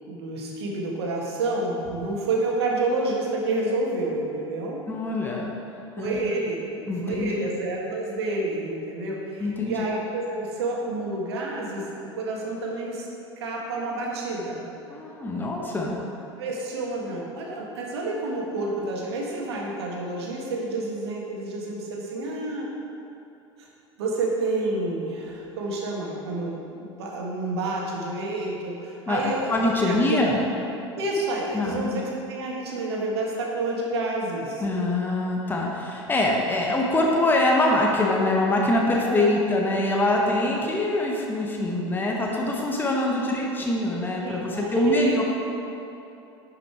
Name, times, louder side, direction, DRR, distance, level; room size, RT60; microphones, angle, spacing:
voice 1, 0.1-4.8 6.0-6.6 7.0-11.8 12.1-13.1 13.4-14.7 16.4-22.7 23.6-23.7 24.0-29.5 29.9-30.2 30.9-34.6 38.9-39.3 44.2-45.1, right 2 dB, 65° right, -2 dB, 1.7 m, -29 dB
voice 2, 4.9-5.5 6.0-6.2 6.9-7.5 9.4-9.8 14.9-16.0 29.1-30.4 31.5-31.9 34.6-45.2, left 2 dB, 15° left, -2 dB, 1.2 m, -24 dB
11.0 x 5.9 x 4.6 m, 2.8 s
figure-of-eight pair, 75°, 15 cm